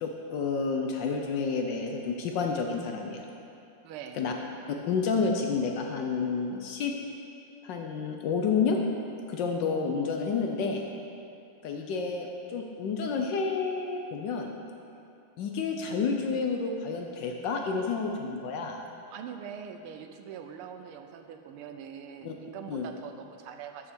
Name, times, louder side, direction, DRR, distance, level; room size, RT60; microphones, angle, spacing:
voice 1, 0.0-3.2 4.1-4.3 4.7-6.9 7.6-8.8 9.3-10.8 11.6-14.5 15.4-18.8 22.2-22.3 22.7-22.9, left 5 dB, 70° left, 2 dB, 1.2 m, -30 dB
voice 2, 3.8-4.2 19.1-23.9, right 8 dB, 85° right, 6 dB, 1.5 m, -43 dB
6.9 x 5.7 x 6.7 m, 2.6 s
omnidirectional pair, 2.3 m